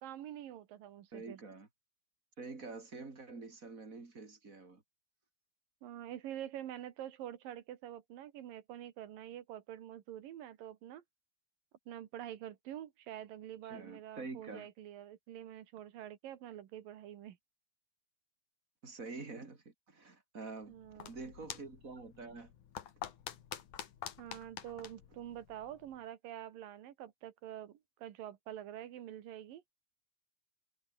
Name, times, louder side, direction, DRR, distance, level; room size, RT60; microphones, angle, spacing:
voice 1, 0.0-1.4 5.8-11.0 11.9-17.4 20.7-21.1 24.2-29.6, right 11 dB, 80° right, 3.3 m, -46 dB
voice 2, 1.1-1.7 2.4-4.8 13.6-14.7 18.8-20.8 21.1-22.5, right 3 dB, 25° right, 3.4 m, -47 dB
sound 1, 20.6-26.0, left 10 dB, 65° left, 3.3 m, -48 dB
omnidirectional pair, 3.9 m